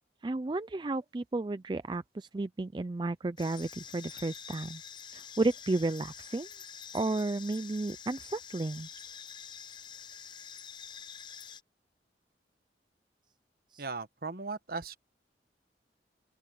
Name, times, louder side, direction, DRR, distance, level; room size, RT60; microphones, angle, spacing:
voice 1, 0.2-4.8 5.1-6.5 6.9-8.9 13.7-13.8, right 2 dB, 25° right, 0.4 m, -33 dB
sound 1, 3.4-11.6, left 7 dB, 25° left, 0.6 m, -47 dB
voice 2, 13.8-15.0, right 4 dB, 55° right, 1.2 m, -37 dB
open air
head